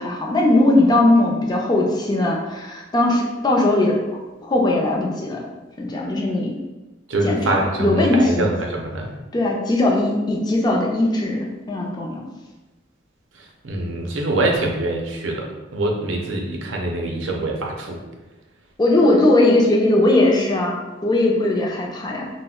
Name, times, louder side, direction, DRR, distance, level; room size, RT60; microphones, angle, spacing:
voice 1, 0.0-4.0 4.4-5.5 5.8-6.5 7.2-8.5 9.3-12.2 18.8-22.3, left 2 dB, 20° left, -2 dB, 0.4 m, -19 dB
voice 2, 7.1-9.1 13.6-18.0, right 2 dB, 90° right, 1 dB, 0.5 m, -24 dB
2.3 x 2.1 x 3.5 m, 1.1 s
head